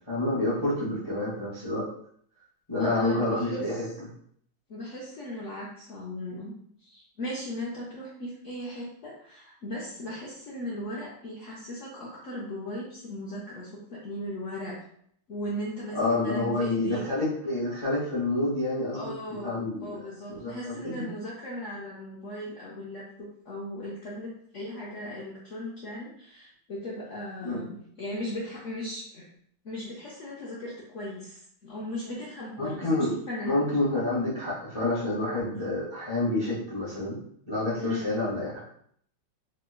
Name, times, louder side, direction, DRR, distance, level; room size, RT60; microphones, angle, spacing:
voice 1, 0.1-1.9 2.7-3.9 15.9-19.1 19.4-20.0 20.3-21.1 27.4-27.6 32.6-33.1 33.4-37.2 37.5-38.6, left 2 dB, 30° left, -8 dB, 0.5 m, -28 dB
voice 2, 2.8-3.8 4.7-6.5 6.8-14.8 15.3-17.0 18.9-29.3 29.6-33.6 37.8-38.1, left 1 dB, 85° left, -6 dB, 0.6 m, -37 dB
3.4 x 2.9 x 2.3 m, 0.65 s
omnidirectional pair, 2.2 m